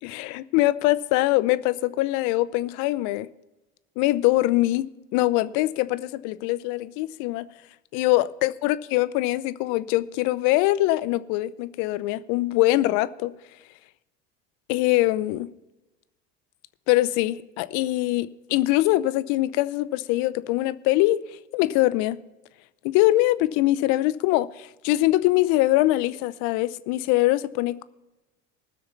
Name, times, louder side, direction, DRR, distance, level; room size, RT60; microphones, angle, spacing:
voice 1, 0.0-3.3 4.0-7.5 7.9-13.3 14.7-15.5 16.9-22.2 22.8-27.8, left 17 dB, 65° left, 0.7 m, -23 dB
19.5 x 6.5 x 5.7 m
hypercardioid pair, 75°, 32 cm